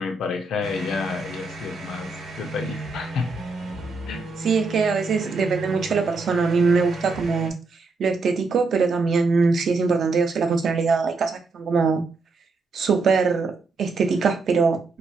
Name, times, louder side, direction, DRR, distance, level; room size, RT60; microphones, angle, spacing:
voice 1, 0.0-2.1 2.4-3.3 4.1-4.3, left 5 dB, 85° left, 0.5 m, -29 dB
sound 1, 0.6-7.5, right 1 dB, 85° right, 0.8 m, -34 dB
voice 2, 4.4-7.5 8.0-12.0 12.7-15.0, right 4 dB, 55° right, 0.4 m, -22 dB
3.0 x 2.3 x 2.5 m
wide cardioid pair, 175°, 0 cm